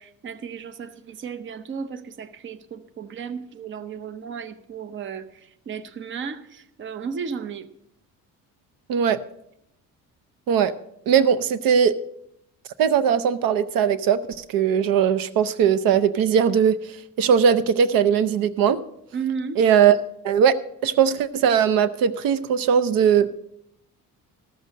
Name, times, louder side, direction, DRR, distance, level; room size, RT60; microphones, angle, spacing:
voice 1, 0.0-7.7 19.1-19.6, right 6 dB, 35° right, 11 dB, 0.7 m, -34 dB
voice 2, 8.9-9.2 10.5-10.7 11.1-12.0 12.8-16.8 17.2-18.8 19.6-20.0 20.2-23.3, right 7 dB, 70° right, 15 dB, 0.6 m, -19 dB
13.5 x 6.8 x 6.4 m, 0.78 s
cardioid pair, 145°, 35 cm